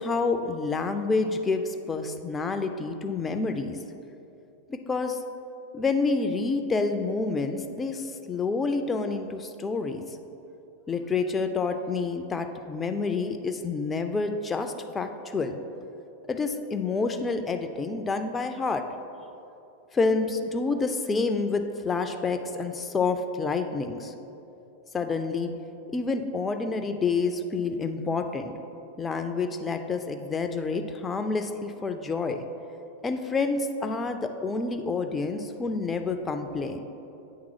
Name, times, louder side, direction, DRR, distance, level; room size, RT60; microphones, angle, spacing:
voice 1, 0.0-3.8 4.7-5.2 5.7-10.0 10.9-15.6 16.3-18.8 19.9-24.1 24.9-25.5 25.9-28.5 29.0-32.4 33.0-36.9, left 4 dB, 15° left, 6 dB, 0.3 m, -28 dB
8.4 x 3.5 x 4.8 m, 2.8 s
figure-of-eight pair, 90°, 0 cm